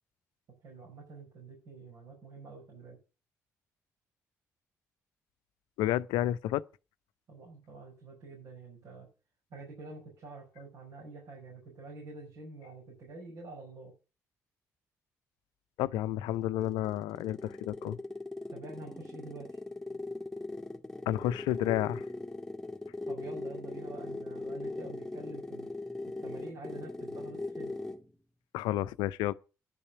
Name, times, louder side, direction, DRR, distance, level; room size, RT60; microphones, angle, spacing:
voice 1, 0.6-3.0 7.3-9.1 9.5-13.9 18.5-19.6 23.1-25.7 26.2-27.7, right 3 dB, 65° right, 5.7 m, -47 dB
voice 2, 5.8-6.6 15.8-18.0 21.1-22.0 28.5-29.3, left 13 dB, 75° left, 0.5 m, -31 dB
sound 1, 16.3-28.1, left 2 dB, 5° left, 2.0 m, -40 dB
11.0 x 5.6 x 8.4 m
hypercardioid pair, 45°, 8 cm